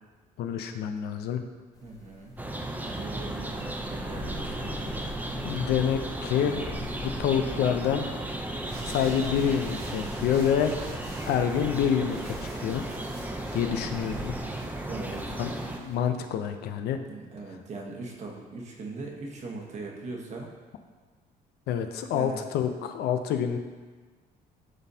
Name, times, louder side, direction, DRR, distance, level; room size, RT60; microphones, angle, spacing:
voice 1, 0.4-1.4 5.4-6.6 7.0-8.1 8.9-10.8 11.2-12.8 13.5-14.3 15.4-15.5 15.8-17.0 21.7-23.6, left 8 dB, 75° left, 7 dB, 0.6 m, -27 dB
sound 1, 1.7-14.4, equal, 20° left, 1.2 m, -45 dB
voice 2, 1.8-2.3 3.0-4.7 13.7-14.2 14.8-15.4 17.1-20.5 22.1-22.4, right 3 dB, 45° right, 0 dB, 1.2 m, -40 dB
sound 2, 2.4-15.8, right 1 dB, 10° right, 0.6 m, -35 dB
sound 3, 8.4-15.9, right 1 dB, 70° right, 1.8 m, -45 dB
10.5 x 4.1 x 2.8 m, 1.4 s
cardioid pair, 110°, 17 cm